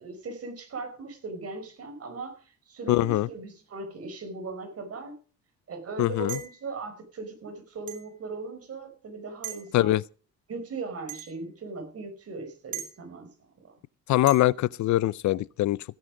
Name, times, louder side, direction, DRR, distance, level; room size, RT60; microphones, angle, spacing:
voice 1, 0.0-5.2 5.7-9.9 10.5-13.3 13.6-13.7, right 3 dB, 50° right, 5.2 m, -38 dB
voice 2, 2.9-3.3 6.0-6.4 9.7-10.0 14.1-15.8, left 15 dB, 70° left, 0.5 m, -23 dB
sound 1, 6.3-6.6 7.9-8.1 9.4-9.7 11.1-11.3 12.7-12.9 14.3-14.5, right 10 dB, 80° right, 2.5 m, -38 dB
16.5 x 9.6 x 5.2 m
cardioid pair, 90°, 30 cm